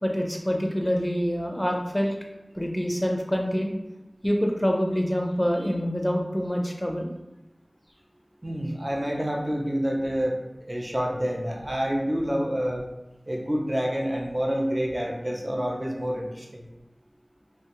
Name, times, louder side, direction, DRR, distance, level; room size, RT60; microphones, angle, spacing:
voice 1, 0.0-2.1 2.6-3.7 4.2-7.1, equal, 10° left, 1 dB, 0.5 m, -26 dB
voice 2, 8.4-10.3 10.7-12.8 13.3-16.6, equal, 35° right, 0 dB, 0.5 m, -28 dB
3.0 x 2.3 x 2.9 m, 0.95 s
wide cardioid pair, 45°, 0 cm